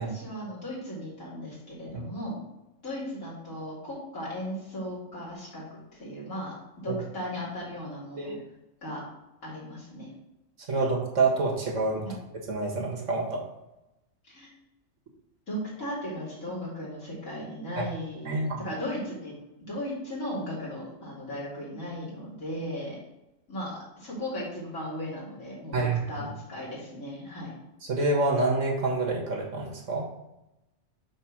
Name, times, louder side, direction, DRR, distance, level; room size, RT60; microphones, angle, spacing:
voice 1, 0.0-2.4 2.8-5.6 5.9-6.5 6.8-8.4 8.8-9.0 9.4-10.1 12.1-12.2 14.2-14.5 15.5-19.4 19.7-23.0 23.5-27.6, equal, 80° left, -7 dB, 3.5 m, -36 dB
voice 2, 10.7-12.1 12.5-13.4 17.8-17.9 18.3-18.6 25.7-26.3 27.9-30.0, right 3 dB, 65° right, -1 dB, 1.8 m, -27 dB
6.6 x 3.7 x 6.0 m, 0.93 s
omnidirectional pair, 1.4 m